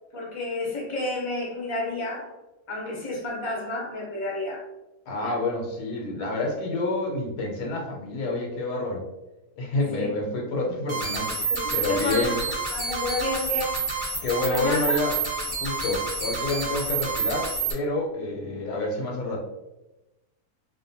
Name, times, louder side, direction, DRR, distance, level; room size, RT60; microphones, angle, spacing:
voice 1, 0.1-2.3 2.7-4.6 5.2-5.4 9.9-10.1 11.6-12.3 12.7-13.8 14.2-14.9, left 2 dB, 40° left, -4 dB, 0.4 m, -30 dB
voice 2, 5.1-9.1 9.6-11.4 11.7-12.4 14.2-15.1 15.5-19.4, left 2 dB, 85° left, -1 dB, 1.2 m, -28 dB
sound 1, 10.9-17.7, right 4 dB, 40° right, 0.8 m, -29 dB
2.6 x 2.1 x 2.6 m, 0.98 s
omnidirectional pair, 1.7 m